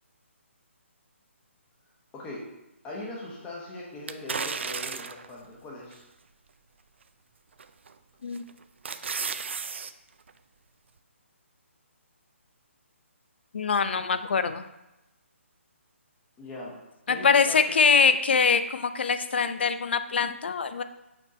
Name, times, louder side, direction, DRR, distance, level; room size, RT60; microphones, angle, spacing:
voice 1, 2.1-2.5 2.8-6.1 16.4-16.7 17.1-17.8, left 2 dB, 15° left, -4 dB, 1.1 m, -40 dB
sound 1, 4.1-5.3 5.9-6.0 7.6-7.9 8.4-9.9 10.3-10.4, right 5 dB, 60° right, 0.4 m, -33 dB
voice 2, 13.5-14.6 17.1-20.8, left 5 dB, 55° left, 10 dB, 0.4 m, -23 dB
6.3 x 3.6 x 4.2 m, 0.94 s
figure-of-eight pair, 140°, 7 cm